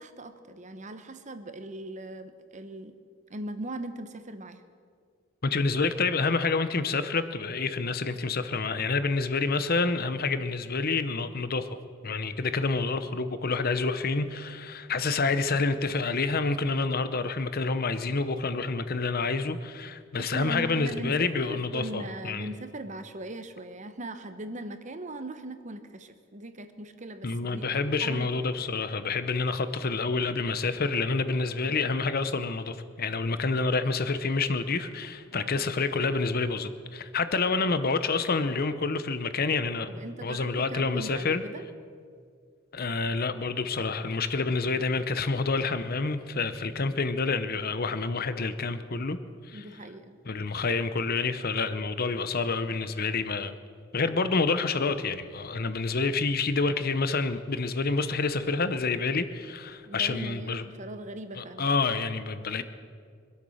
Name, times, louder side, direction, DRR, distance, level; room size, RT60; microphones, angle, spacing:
voice 1, 0.0-2.9 3.3-4.6 20.2-27.6 28.0-28.3 35.3-35.6 39.9-41.6 49.5-50.2 59.9-61.7, right 1 dB, 35° right, 9 dB, 1.0 m, -39 dB
voice 2, 5.4-11.7 12.0-22.5 27.2-39.9 40.2-41.4 42.7-49.2 49.5-49.6 50.2-53.6 53.9-60.6 61.4-62.6, left 4 dB, 45° left, 12 dB, 0.8 m, -28 dB
25.0 x 8.4 x 6.4 m, 2.1 s
head